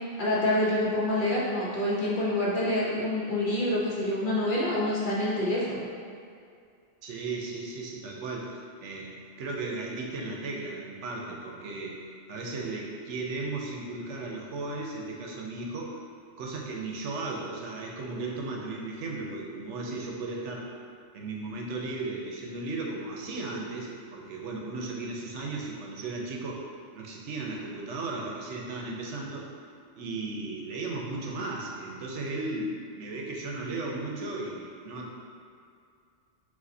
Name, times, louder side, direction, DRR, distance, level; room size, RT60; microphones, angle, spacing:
voice 1, 0.2-5.9, left 1 dB, 45° left, -7 dB, 0.9 m, -27 dB
voice 2, 7.0-12.0 12.3-16.0 16.4-20.7 21.1-26.6 26.9-29.5 30.0-35.1, right 3 dB, 80° right, -1 dB, 0.9 m, -35 dB
6.2 x 2.5 x 2.7 m, 2.3 s
omnidirectional pair, 1.3 m